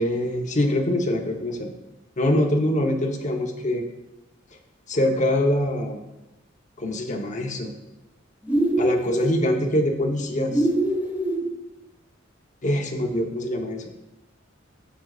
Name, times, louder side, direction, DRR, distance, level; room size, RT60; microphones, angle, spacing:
voice 1, 0.0-1.7 2.2-3.8 4.9-6.0 6.8-7.7 8.8-10.7 12.6-13.8, left 1 dB, 40° left, 1 dB, 1.0 m, -24 dB
sound 1, 8.5-9.4 10.5-11.4, right 1 dB, 10° right, 1.6 m, -23 dB
14.0 x 6.3 x 2.4 m, 1.0 s
head